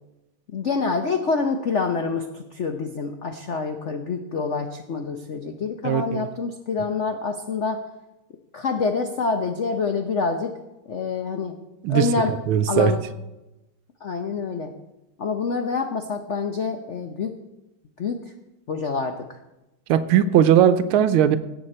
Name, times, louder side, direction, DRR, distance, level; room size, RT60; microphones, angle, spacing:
voice 1, 0.5-7.8 8.5-10.5 10.9-11.5 11.9-12.3 12.7-13.0 14.0-14.7 15.2-17.3 18.0-18.3 18.7-19.4, left 4 dB, 80° left, 5 dB, 0.6 m, -26 dB
voice 2, 5.8-6.3 11.8-12.1 12.5-12.9 19.9-21.4, right 9 dB, 85° right, 12 dB, 1.5 m, -18 dB
17.5 x 7.7 x 4.3 m, 0.98 s
omnidirectional pair, 2.3 m